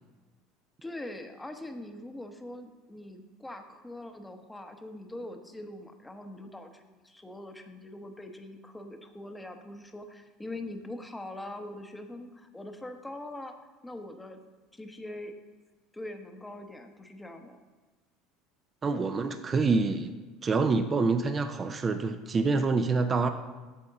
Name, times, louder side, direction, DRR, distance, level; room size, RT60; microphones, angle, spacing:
voice 1, 0.8-13.5 13.8-14.4 14.7-15.3 15.9-17.6, left 1 dB, 10° left, 5 dB, 0.9 m, -42 dB
voice 2, 18.8-20.1 20.4-23.3, right 4 dB, 30° right, 8 dB, 0.5 m, -26 dB
8.5 x 3.5 x 6.6 m, 1.3 s
supercardioid pair, 95°, 0 cm